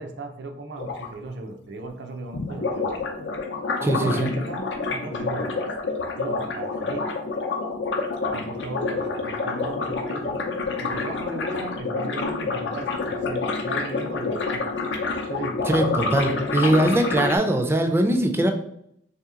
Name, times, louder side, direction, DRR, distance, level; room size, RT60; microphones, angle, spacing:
voice 1, 0.0-2.9 3.8-5.7 6.2-7.1 8.3-10.4 10.8-14.7 15.3-15.6 16.1-17.0, right 2 dB, 70° right, 5 dB, 0.5 m, -36 dB
sound 1, 0.8-1.1 2.3-17.4, left 4 dB, 80° left, 0.5 m, -28 dB
voice 2, 3.8-4.3 15.7-18.5, right 1 dB, 15° right, 4 dB, 0.4 m, -21 dB
3.5 x 2.8 x 3.6 m, 0.72 s
head